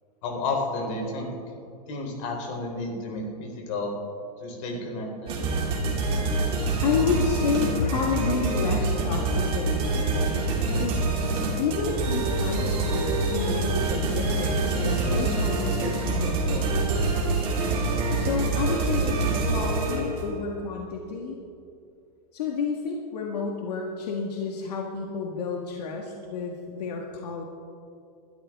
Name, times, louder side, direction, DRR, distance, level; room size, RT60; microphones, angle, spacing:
voice 1, 0.2-1.3 1.9-3.9 4.4-5.4, left 2 dB, 50° left, 1 dB, 3.7 m, -31 dB
sound 1, 5.3-20.3, right 3 dB, 25° right, 2.8 m, -26 dB
voice 2, 6.8-11.0 11.6-16.8 18.2-21.4 22.3-27.4, left 5 dB, 80° left, 0 dB, 1.7 m, -30 dB
21.0 x 12.5 x 3.6 m, 2.5 s
supercardioid pair, 155°, 20 cm